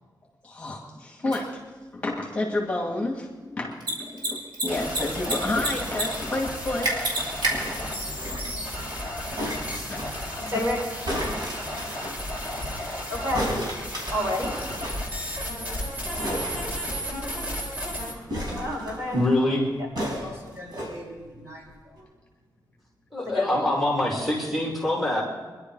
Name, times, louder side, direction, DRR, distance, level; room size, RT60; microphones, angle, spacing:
voice 1, 0.4-1.6 1.9-7.1 7.5-7.7 9.9-10.4, left 2 dB, 15° left, -2 dB, 2.4 m, -30 dB
Mechanisms, 1.3-1.4 3.7-3.9 4.2-4.3 4.5-5.3 5.6-6.0 6.3-6.4 6.8-7.5, right 2 dB, 85° right, 4.2 m, -25 dB
sound 1, 4.7-18.1, left 1 dB, 25° right, 4.0 m, -33 dB
sound 2, 7.6-8.7 9.4-10.1 11.0-12.2 13.3-15.0 15.3-15.4 15.6-15.8 16.2-17.4 18.3-19.2 20.0-20.9 21.7-21.8, equal, 70° right, 5.0 m, -33 dB
voice 2, 10.5-10.8 11.3-11.5 13.1-13.4 14.1-14.5 15.6-15.8 16.7-17.0 18.0-18.2 18.5-19.2 20.2-21.6 23.2-23.7, left 1 dB, 45° right, -4 dB, 6.3 m, -32 dB
voice 3, 19.1-19.7 23.1-25.2, left 1 dB, ahead, -4 dB, 3.0 m, -24 dB
25.0 x 11.5 x 4.9 m, 1.4 s
wide cardioid pair, 160°, 7 cm